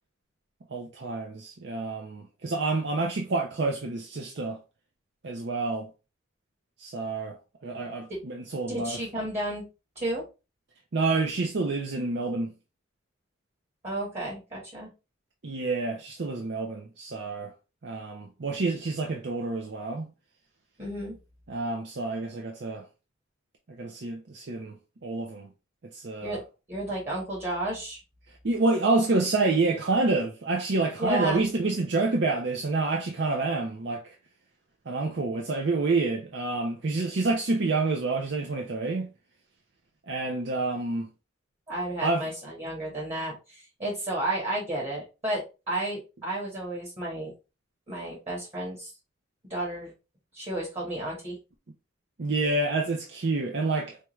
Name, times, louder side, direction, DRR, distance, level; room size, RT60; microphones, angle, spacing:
voice 1, 0.7-4.6 5.2-5.9 6.8-9.0 10.9-12.5 15.4-17.5 17.8-20.1 21.5-22.8 23.7-24.8 25.0-25.5 25.9-26.4 28.4-34.1 34.9-39.1 40.1-41.1 42.0-42.3 52.2-54.0, right 3 dB, 60° right, 0.5 m, -28 dB
voice 2, 8.7-9.6 9.9-10.2 13.8-14.9 20.8-21.2 26.2-26.4 26.7-28.0 31.0-31.5 41.7-45.4 45.7-47.3 47.9-48.9 49.5-49.9 50.3-51.4, right 1 dB, 35° right, 1.2 m, -32 dB
4.5 x 2.3 x 3.0 m
head